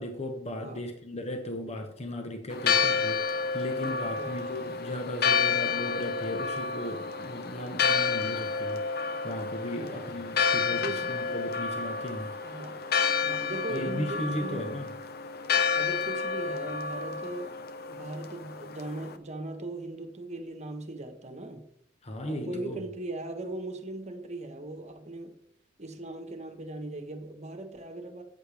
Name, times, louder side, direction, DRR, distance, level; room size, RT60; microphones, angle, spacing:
voice 1, 0.0-8.9 9.2-12.4 13.7-14.9 22.0-22.8, left 1 dB, 35° left, 4 dB, 1.2 m, -36 dB
Church bell, 2.5-19.2, left 5 dB, 55° left, 0.8 m, -30 dB
voice 2, 3.8-4.4 9.8-10.1 10.7-11.1 12.4-12.9 13.2-14.7 15.7-21.7 22.3-25.4 25.8-28.2, right 2 dB, 35° right, 6 dB, 1.3 m, -39 dB
13.5 x 8.7 x 3.5 m, 0.71 s
head